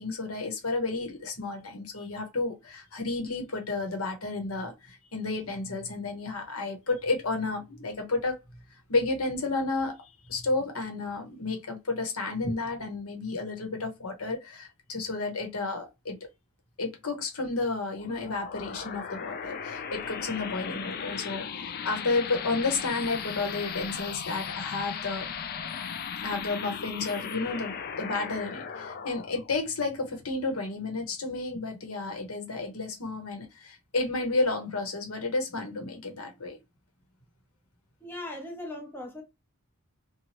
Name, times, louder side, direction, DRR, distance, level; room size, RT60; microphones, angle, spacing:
voice 1, 0.0-8.4 8.9-16.2 16.8-25.3 26.2-36.6, left 3 dB, 80° left, 1.0 m, -31 dB
sound 1, 17.9-31.1, left 7 dB, 45° left, 0.3 m, -37 dB
voice 2, 38.0-39.2, left 1 dB, 10° left, 0.8 m, -39 dB
2.8 x 2.3 x 2.9 m
head